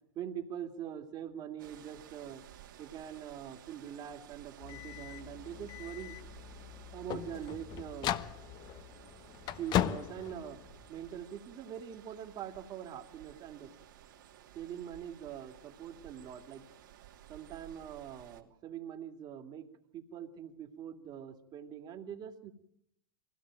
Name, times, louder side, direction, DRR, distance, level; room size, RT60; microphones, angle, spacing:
voice 1, 0.1-2.4 2.8-6.2 6.9-8.2 9.6-10.6 10.9-13.7 14.5-17.0 17.3-19.7 19.9-22.5, right 9 dB, 40° right, 7 dB, 2.6 m, -43 dB
sound 1, 1.6-18.4, right 11 dB, 65° right, 2.8 m, -55 dB
sound 2, 4.6-11.2, left 11 dB, 40° left, 1.2 m, -38 dB
23.0 x 16.5 x 9.1 m, 0.74 s
hypercardioid pair, 90°, 11 cm